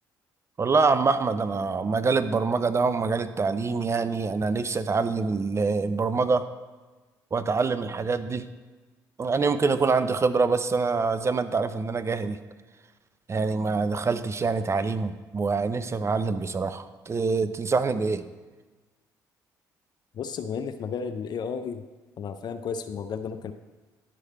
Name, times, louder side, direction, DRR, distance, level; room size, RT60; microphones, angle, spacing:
voice 1, 0.6-6.5 7.3-8.5 9.2-12.4 13.3-18.2, right 4 dB, 30° right, 12 dB, 0.6 m, -25 dB
voice 2, 20.1-21.8 22.2-23.5, left 6 dB, 55° left, 9 dB, 0.5 m, -33 dB
10.5 x 4.9 x 4.2 m, 1.3 s
hypercardioid pair, 55°, 9 cm